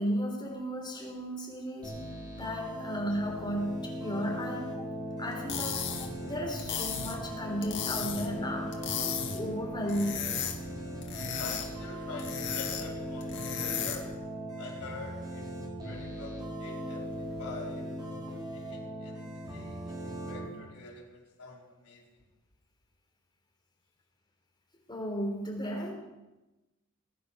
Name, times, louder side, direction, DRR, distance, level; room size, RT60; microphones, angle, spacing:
voice 1, 0.0-2.1 2.3-4.9 5.2-10.3 24.9-25.9, equal, 20° left, 0 dB, 3.6 m, -34 dB
sound 1, 1.8-20.5, equal, 20° right, 4.0 m, -39 dB
sound 2, 5.3-14.2, left 7 dB, 55° left, 2.1 m, -36 dB
voice 2, 11.4-14.1 14.6-15.5 15.8-17.9 18.5-19.2 19.5-22.2, left 3 dB, 85° left, -3 dB, 4.5 m, -46 dB
20.5 x 10.0 x 5.8 m, 1.0 s
head